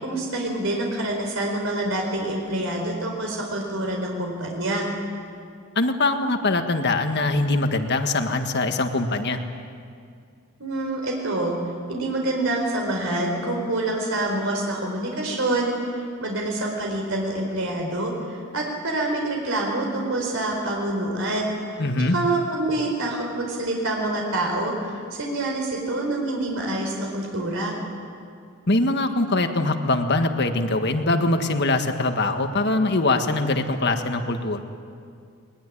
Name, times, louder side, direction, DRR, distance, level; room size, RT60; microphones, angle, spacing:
voice 1, 0.0-4.9 10.6-11.6 11.9-21.8 22.1-27.7, right 2 dB, 70° right, 0 dB, 4.5 m, -26 dB
voice 2, 5.7-9.4 21.8-22.1 28.7-34.6, left 2 dB, 50° left, 6 dB, 1.7 m, -22 dB
21.0 x 21.0 x 9.9 m, 2.3 s
head